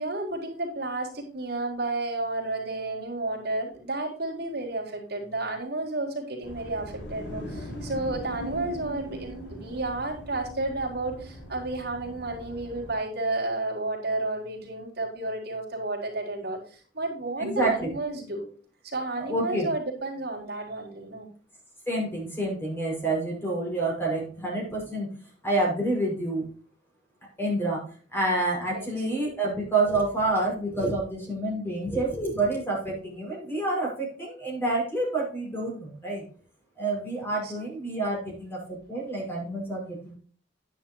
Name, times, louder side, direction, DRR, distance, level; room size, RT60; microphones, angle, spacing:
voice 1, 0.0-18.5 18.8-21.3 28.7-28.9 37.4-37.5, right 2 dB, 60° right, -1 dB, 3.9 m, -32 dB
sound 1, 6.4-12.9, equal, 85° left, 5.0 m, -40 dB
voice 2, 17.4-17.9 19.2-19.7 21.9-25.1 25.4-26.4 27.4-27.8 28.1-36.2 36.8-40.1, right 2 dB, 15° left, -2 dB, 6.0 m, -28 dB
10.5 x 10.0 x 3.1 m, 0.42 s
head